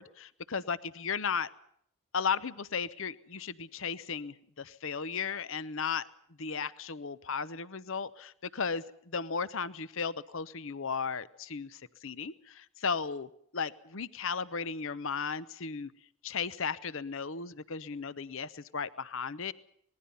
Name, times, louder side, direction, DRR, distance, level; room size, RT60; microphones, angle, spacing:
voice 1, 0.0-1.5 2.1-6.0 6.4-8.8 9.1-15.9 16.2-19.5, left 5 dB, 60° left, 16 dB, 0.8 m, -35 dB
26.5 x 20.5 x 5.6 m, 0.67 s
head